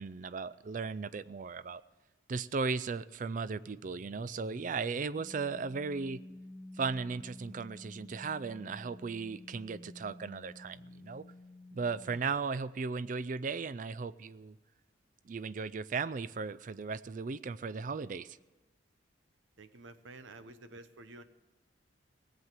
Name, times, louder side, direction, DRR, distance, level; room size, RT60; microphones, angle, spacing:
voice 1, 0.0-1.8 2.3-6.2 6.8-11.2 11.7-14.6 15.2-18.4, right 4 dB, 45° right, 17 dB, 0.4 m, -36 dB
sound 1, 3.2-12.5, left 1 dB, 5° left, 0.7 m, -52 dB
voice 2, 19.6-21.2, right 2 dB, 90° right, 11 dB, 0.9 m, -51 dB
18.0 x 8.0 x 7.4 m, 1.1 s
head